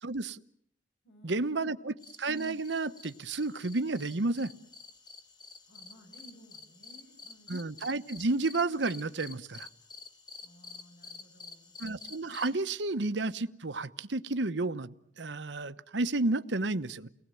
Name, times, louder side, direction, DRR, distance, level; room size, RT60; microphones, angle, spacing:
voice 1, 0.0-0.4 1.2-4.5 7.5-9.7 11.8-17.1, right 2 dB, 70° right, 11 dB, 1.0 m, -31 dB
voice 2, 1.0-2.0 5.7-7.7 10.4-11.8, equal, 75° left, 2 dB, 6.5 m, -57 dB
sound 1, 2.0-12.6, left 4 dB, 25° left, 1.7 m, -50 dB
30.0 x 19.0 x 9.2 m, 0.69 s
head